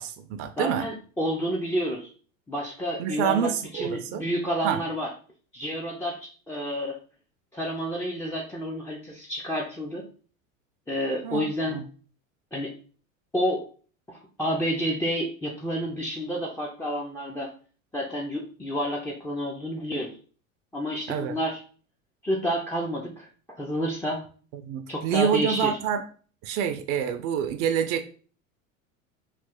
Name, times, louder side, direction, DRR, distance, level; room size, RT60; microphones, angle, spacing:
voice 1, 0.0-0.9 3.0-4.2 4.6-4.8 11.2-11.8 21.1-21.3 24.6-26.0 26.4-28.1, right 8 dB, 55° right, 7 dB, 0.5 m, -27 dB
voice 2, 0.6-2.1 2.5-5.1 5.5-7.0 7.5-10.1 10.9-11.8 12.5-12.7 13.3-13.6 14.1-17.5 17.9-20.1 20.7-21.6 22.2-23.3 23.6-24.2 24.9-25.8, equal, 5° left, -1 dB, 0.4 m, -29 dB
3.2 x 2.4 x 3.6 m, 0.41 s
hypercardioid pair, 85°, 40 cm